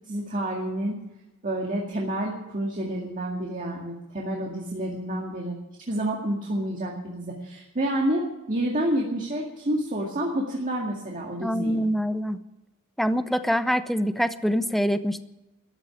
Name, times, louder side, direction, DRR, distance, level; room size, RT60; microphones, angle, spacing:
voice 1, 0.1-1.0 1.4-5.6 5.9-11.8, right 1 dB, 40° right, -2 dB, 2.1 m, -29 dB
voice 2, 11.4-12.4 13.0-15.2, equal, ahead, 11 dB, 0.6 m, -25 dB
14.0 x 10.0 x 9.9 m, 1.0 s
head